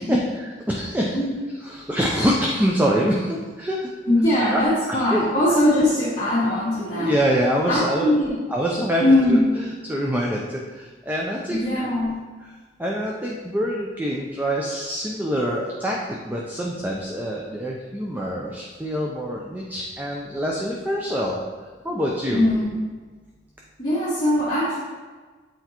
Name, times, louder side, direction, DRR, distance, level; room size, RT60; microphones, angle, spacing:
voice 1, 0.0-1.2 1.6-3.9 4.5-5.3 6.9-8.1 8.5-9.4 9.8-11.6 12.4-12.5 12.8-16.0 16.2-21.4 21.8-22.4, equal, 10° right, -2 dB, 0.5 m, -25 dB
voice 2, 4.1-7.1 7.7-8.4 9.0-9.4 11.5-12.2 22.3-22.7 23.8-24.8, left 1 dB, 25° left, -13 dB, 1.9 m, -20 dB
8.0 x 4.4 x 2.9 m, 1.4 s
head